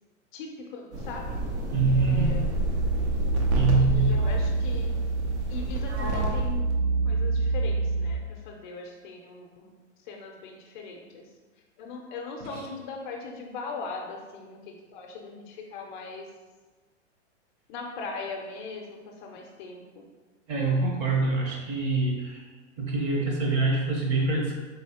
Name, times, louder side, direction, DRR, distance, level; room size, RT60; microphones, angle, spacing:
voice 1, 0.3-1.4 1.9-2.6 3.8-4.9 5.5-6.6 7.0-11.2 11.8-16.3 17.7-20.1, left 4 dB, 40° left, 1 dB, 0.5 m, -40 dB
sound 1, 0.9-6.7, right 1 dB, 70° right, 0.9 m, -30 dB
voice 2, 1.7-2.4 3.5-4.2 12.5-12.6 20.5-22.5 22.8-24.6, right 3 dB, 40° right, -1 dB, 1.1 m, -25 dB
sound 2, 1.8-8.1, right 3 dB, 10° right, 0.7 m, -27 dB
4.1 x 3.0 x 2.8 m, 1.3 s
hypercardioid pair, 130°, 36 cm